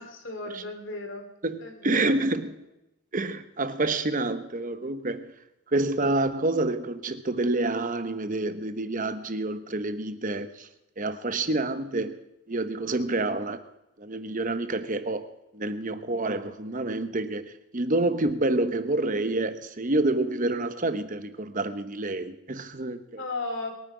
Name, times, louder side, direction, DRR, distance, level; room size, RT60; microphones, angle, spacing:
voice 1, 0.0-1.3 1.6-2.1 2.4-2.5 23.2-23.7, left 2 dB, 55° left, 4 dB, 2.9 m, -35 dB
voice 2, 1.4-2.5 3.1-5.3 5.7-10.7 11.0-12.2 12.5-13.6 14.0-23.2, right 2 dB, 35° right, 11 dB, 0.9 m, -28 dB
22.5 x 9.3 x 4.9 m, 0.91 s
head